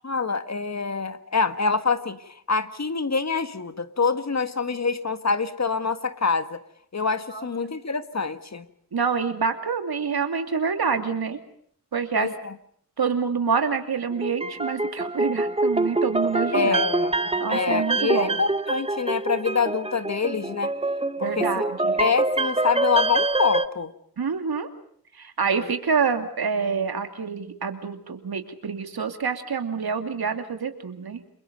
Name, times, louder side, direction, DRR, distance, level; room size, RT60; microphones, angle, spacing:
voice 1, 0.0-6.6 6.9-8.7 12.2-12.5 16.5-20.7 21.2-21.6 22.0-23.9 25.6-25.7, left 5 dB, 45° left, 11 dB, 1.7 m, -26 dB
voice 2, 8.9-11.4 11.9-12.3 13.0-16.8 17.4-18.4 21.2-22.0 24.2-24.7 25.1-31.2, right 5 dB, 75° right, 7 dB, 2.8 m, -27 dB
sound 1, 14.1-23.7, right 2 dB, 15° right, 0.9 m, -25 dB
30.0 x 23.0 x 5.4 m, 0.64 s
wide cardioid pair, 70°, 38 cm